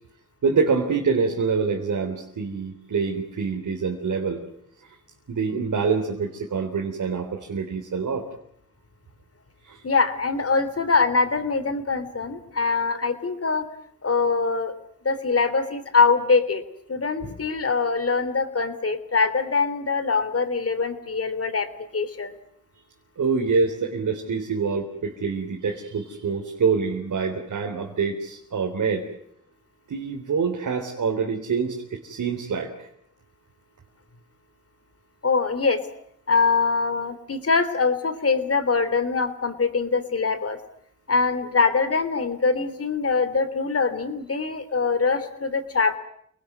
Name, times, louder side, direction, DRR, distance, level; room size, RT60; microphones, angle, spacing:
voice 1, 0.4-4.4 4.8-4.9 5.3-8.3 9.7-9.8 12.9-13.0 23.2-29.0 29.9-32.7, right 5 dB, 75° right, 1 dB, 3.7 m, -26 dB
voice 2, 9.8-13.7 14.0-14.7 15.1-16.6 16.9-22.3 35.2-35.8 36.3-40.6 41.1-46.0, left 4 dB, 50° left, 11 dB, 3.5 m, -23 dB
28.5 x 19.5 x 9.5 m, 0.70 s
cardioid pair, 70°, 31 cm